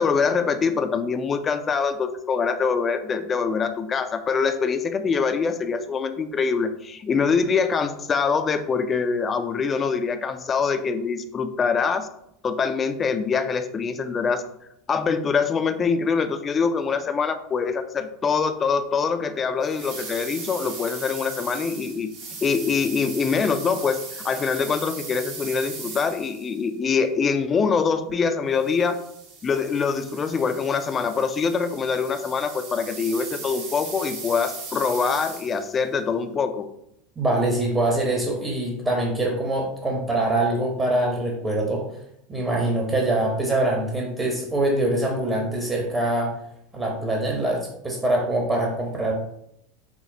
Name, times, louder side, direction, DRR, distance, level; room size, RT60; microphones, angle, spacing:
voice 1, 0.0-12.1 12.4-14.4 14.9-22.1 22.4-29.0 29.4-36.7, left 5 dB, 30° left, 9 dB, 0.4 m, -24 dB
sound 1, 19.6-26.6 28.5-35.8, right 4 dB, 65° right, 1.2 m, -38 dB
voice 2, 37.2-41.8 42.3-46.3 46.7-49.1, right 1 dB, 25° right, 0 dB, 0.9 m, -24 dB
5.8 x 2.0 x 2.7 m, 0.76 s
hypercardioid pair, 90°, 0 cm